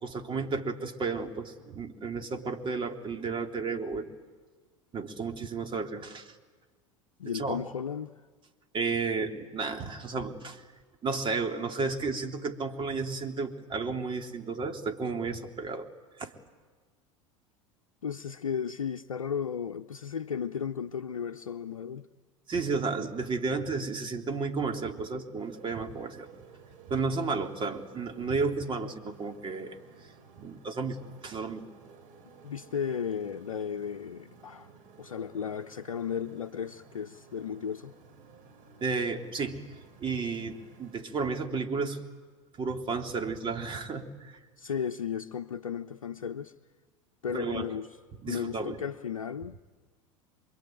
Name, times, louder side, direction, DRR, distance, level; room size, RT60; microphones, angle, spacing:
voice 1, 0.0-4.1 4.9-6.3 7.3-7.6 8.7-10.6 11.0-15.9 16.2-16.3 22.5-26.3 26.9-29.8 30.4-31.7 38.8-39.6 40.0-42.0 42.6-44.4 47.3-47.7 48.2-48.7, right 4 dB, 30° right, 3.2 m, -32 dB
voice 2, 7.2-8.1 18.0-22.1 32.4-34.7 35.0-37.9 44.6-46.5 47.2-47.9 48.3-49.6, left 7 dB, 85° left, 0.7 m, -34 dB
Motorcycle, 25.4-41.0, right 5 dB, 50° right, 5.0 m, -55 dB
27.5 x 22.5 x 9.2 m
hypercardioid pair, 80°, 17 cm